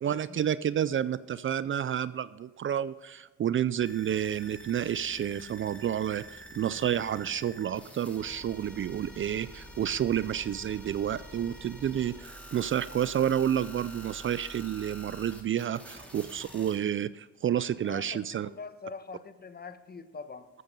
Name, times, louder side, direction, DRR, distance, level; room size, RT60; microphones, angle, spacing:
voice 1, 0.0-18.5, right 10 dB, 45° right, 17 dB, 0.4 m, -30 dB
sound 1, 3.8-16.8, equal, 5° left, 2.9 m, -47 dB
voice 2, 17.8-20.5, left 5 dB, 30° left, 12 dB, 1.1 m, -43 dB
14.0 x 7.8 x 5.4 m, 1.2 s
cardioid pair, 90°, 30 cm